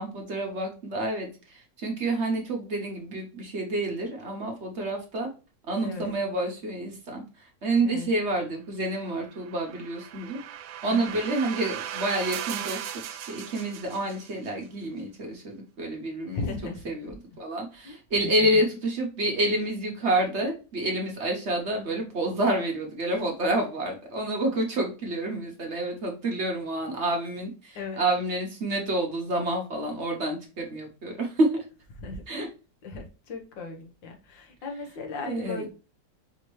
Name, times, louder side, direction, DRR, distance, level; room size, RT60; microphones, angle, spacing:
voice 1, 0.0-5.3 5.7-10.4 10.8-16.4 16.8-31.6 32.3-32.5 35.2-35.6, right 1 dB, 45° right, 1 dB, 1.0 m, -28 dB
voice 2, 5.8-6.1 7.8-8.1 10.8-11.2 16.3-17.2 17.8-18.0 18.2-18.5 27.8-28.0 32.0-32.2 32.8-35.7, left 3 dB, 75° left, 3 dB, 1.7 m, -37 dB
sound 1, 9.2-14.5, right 11 dB, 90° right, 1.3 m, -37 dB
5.2 x 2.8 x 3.0 m, 0.34 s
omnidirectional pair, 2.0 m